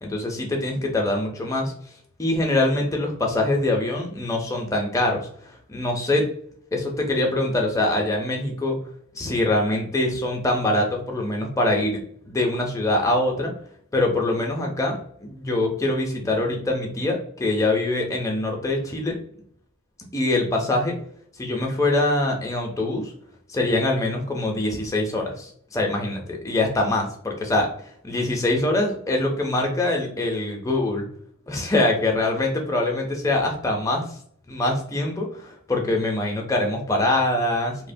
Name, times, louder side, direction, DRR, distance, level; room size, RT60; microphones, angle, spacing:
voice 1, 0.0-1.7 2.2-6.3 6.7-8.8 9.1-13.5 13.9-19.2 20.1-21.0 21.4-23.1 23.5-27.7 28.0-31.1 31.5-34.2 34.5-37.9, left 2 dB, 15° left, 1 dB, 0.4 m, -24 dB
2.7 x 2.1 x 2.5 m, 0.63 s
head